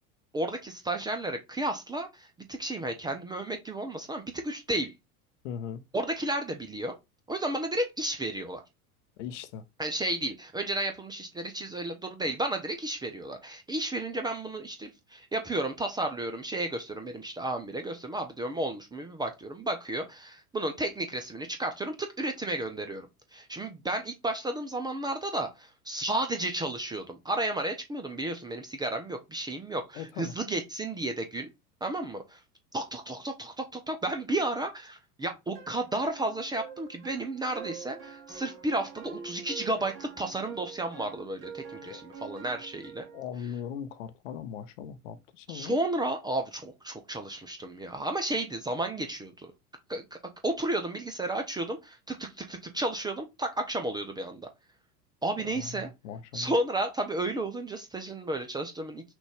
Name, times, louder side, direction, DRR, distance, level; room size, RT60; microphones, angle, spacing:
voice 1, 0.3-4.9 5.9-7.0 7.3-8.6 9.8-23.1 23.3-31.5 31.8-32.4 32.7-43.1 45.5-49.5 49.9-50.2 50.4-54.5 55.2-55.9 56.3-59.0, right 1 dB, 10° right, 0.6 m, -32 dB
voice 2, 5.4-5.8 9.2-9.6 29.9-30.3 41.8-42.0 43.1-45.8 55.5-56.5, left 8 dB, 50° left, 0.8 m, -39 dB
sound 1, 35.6-43.2, right 6 dB, 35° right, 1.4 m, -45 dB
6.0 x 2.5 x 3.4 m
figure-of-eight pair, 80°, 46 cm